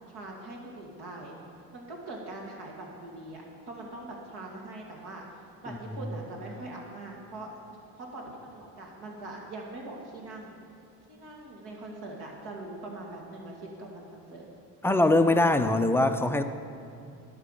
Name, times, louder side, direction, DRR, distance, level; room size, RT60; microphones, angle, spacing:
voice 1, 0.1-1.3 1.7-5.3 5.6-7.5 8.0-10.5 11.1-14.4, right 2 dB, 60° right, -1 dB, 2.4 m, -42 dB
voice 2, 14.8-16.4, left 2 dB, 5° left, 8 dB, 0.4 m, -22 dB
11.0 x 5.8 x 6.7 m, 2.6 s
hypercardioid pair, 70°, 44 cm